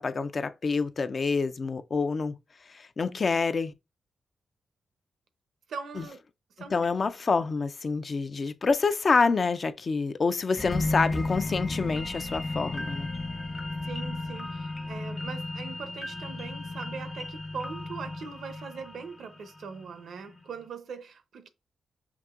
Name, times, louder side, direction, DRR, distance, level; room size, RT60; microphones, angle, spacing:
voice 1, 0.0-2.3 2.7-3.7 6.0-6.1 6.6-13.1, left 4 dB, 50° left, 0.4 m, -27 dB
voice 2, 5.7-6.2 6.6-6.7 13.8-21.5, right 5 dB, 75° right, 0.6 m, -41 dB
sound 1, 10.6-19.9 20.3-20.4, left 2 dB, 35° left, 0.9 m, -34 dB
5.9 x 2.6 x 2.4 m
cardioid pair, 55°, 0 cm